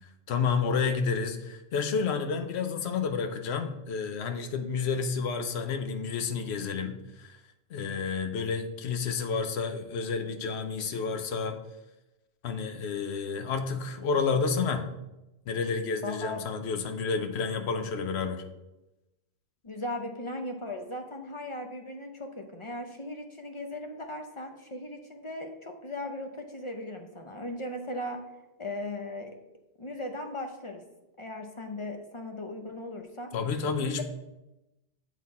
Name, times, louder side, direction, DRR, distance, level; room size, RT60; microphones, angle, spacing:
voice 1, 0.3-7.4 7.7-11.6 12.4-14.9 15.5-18.4 33.3-34.0, left 5 dB, 80° left, 8 dB, 0.9 m, -30 dB
voice 2, 16.0-16.4 19.6-28.2 28.6-29.3 29.8-30.8 31.2-33.3 33.8-34.0, left 1 dB, 40° left, 5 dB, 0.5 m, -37 dB
7.3 x 4.1 x 4.2 m, 0.96 s
omnidirectional pair, 1.1 m